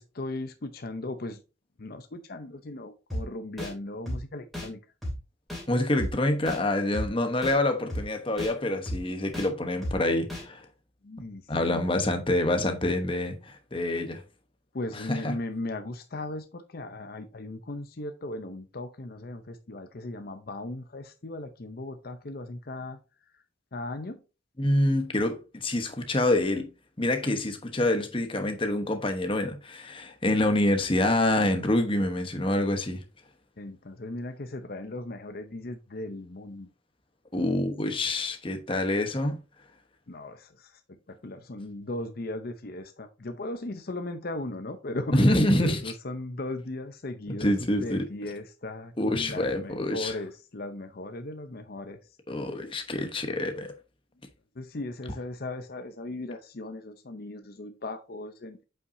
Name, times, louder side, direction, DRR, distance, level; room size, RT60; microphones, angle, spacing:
voice 1, 0.0-1.4 1.8-4.8 11.0-11.9 14.7-23.0 23.7-24.2 33.6-36.7 40.1-45.2 45.5-52.0 54.6-58.6, left 2 dB, 50° left, 0.7 m, -37 dB
sound 1, 3.1-3.2 3.6-3.7 4.1-4.2 4.5-4.7 5.0-5.1 5.5-5.6 6.0-6.1 6.5-6.6 6.9-7.1 7.4-7.5 7.9-8.0 8.4-8.5 8.9-9.0 9.3-9.5 9.8-9.9 10.3-10.4, left 1 dB, ahead, 2.6 m, -32 dB
voice 2, 5.7-10.6 11.5-14.2 14.9-15.4 24.6-26.7 27.0-33.0 37.3-39.4 45.1-45.8 47.4-48.0 49.0-50.1 52.3-53.7, left 1 dB, 25° left, 1.0 m, -26 dB
8.0 x 5.7 x 2.7 m
head